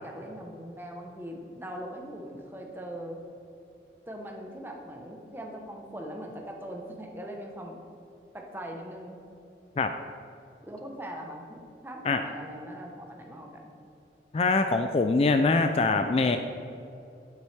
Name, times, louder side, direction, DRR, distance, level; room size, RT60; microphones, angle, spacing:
voice 1, 0.0-3.2 4.1-7.8 8.3-9.2 10.6-13.7, equal, 10° right, 1 dB, 1.0 m, -41 dB
voice 2, 14.3-16.4, left 3 dB, 35° left, 7 dB, 0.3 m, -23 dB
9.4 x 8.3 x 3.4 m, 2.7 s
head